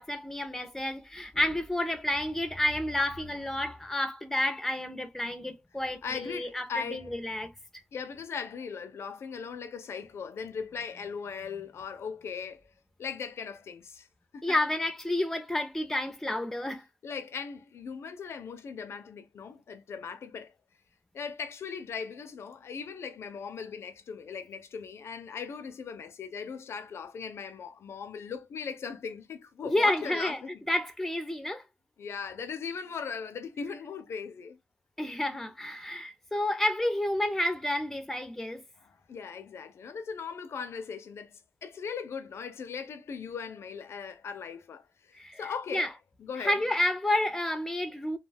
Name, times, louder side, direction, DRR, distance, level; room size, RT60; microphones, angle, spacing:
voice 1, 0.0-7.5 14.4-16.8 29.6-30.4 30.7-31.6 35.0-38.6 45.2-45.4 45.7-45.9 46.4-48.2, left 1 dB, 5° left, 0.4 m, -30 dB
voice 2, 6.0-7.1 7.9-12.6 13.0-14.1 14.3-14.6 17.0-20.5 21.1-30.6 32.0-34.6 38.8-45.9 46.2-46.6, left 6 dB, 80° left, 0.4 m, -39 dB
2.3 x 2.2 x 3.2 m
wide cardioid pair, 145°, 4 cm